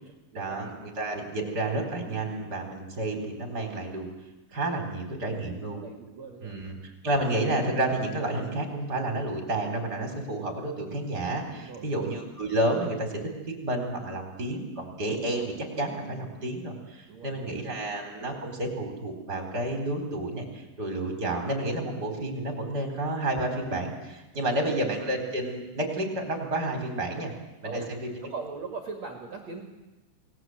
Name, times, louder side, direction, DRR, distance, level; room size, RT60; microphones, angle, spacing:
voice 1, 0.3-4.1 4.5-5.8 6.4-6.8 7.0-13.1 13.5-27.3 27.6-28.1, right 1 dB, 20° right, 4 dB, 4.0 m, -30 dB
voice 2, 5.2-6.5 11.6-11.9 17.1-17.8 24.3-24.8 27.6-27.9 28.2-29.6, right 4 dB, 45° right, 2 dB, 2.7 m, -40 dB
29.0 x 19.5 x 7.9 m, 1.1 s
omnidirectional pair, 5.4 m